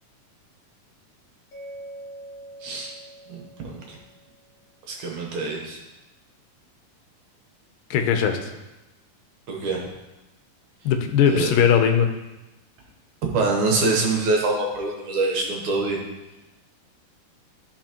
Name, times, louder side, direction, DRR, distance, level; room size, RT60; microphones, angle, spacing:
Mallet percussion, 1.5-4.5, right 1 dB, 55° left, 2.3 m, -43 dB
voice 1, 2.6-2.9 3.3-4.0 4.9-5.8 9.5-9.9 11.3-11.5 13.3-16.0, right 3 dB, 65° right, 0 dB, 2.5 m, -25 dB
voice 2, 7.9-8.5 10.9-12.1, left 7 dB, 85° left, 5 dB, 2.4 m, -19 dB
14.0 x 5.6 x 3.0 m, 1.0 s
omnidirectional pair, 3.9 m